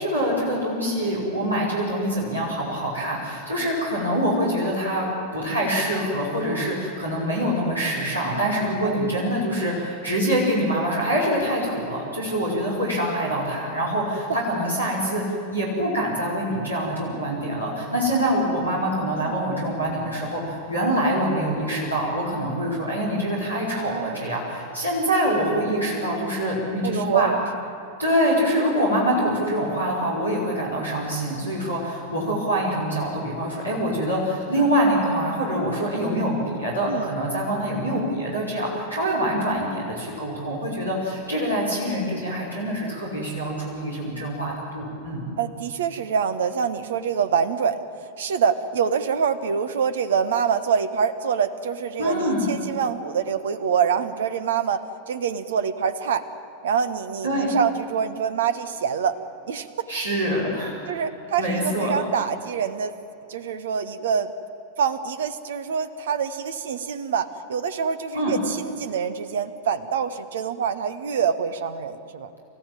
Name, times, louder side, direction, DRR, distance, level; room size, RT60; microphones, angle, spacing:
voice 1, 0.0-5.1 5.3-27.3 28.0-45.2 52.0-52.5 57.2-57.5 59.9-60.7 61.4-62.0 68.1-68.3, equal, 85° right, -6 dB, 5.5 m, -25 dB
voice 2, 8.8-9.3 19.2-19.5 23.8-24.3 26.8-27.4 36.9-37.1 45.4-47.8 48.2-56.2 56.6-59.2 59.5-59.7 60.9-62.9 63.3-64.3 64.8-72.3, right 7 dB, 60° right, 12 dB, 1.3 m, -25 dB
28.0 x 15.0 x 9.1 m, 3.0 s
figure-of-eight pair, 90°, 0 cm